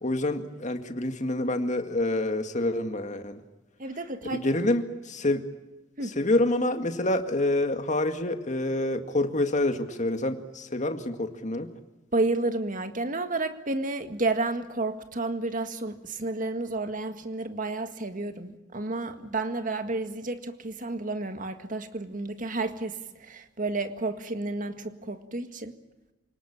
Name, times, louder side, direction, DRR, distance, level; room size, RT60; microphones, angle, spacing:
voice 1, 0.0-3.4 4.3-5.4 6.2-11.7, left 1 dB, 40° left, 2.0 m, -27 dB
voice 2, 3.8-4.4 6.0-6.1 12.1-25.7, right 2 dB, 45° right, 1.8 m, -31 dB
28.0 x 19.0 x 8.8 m
head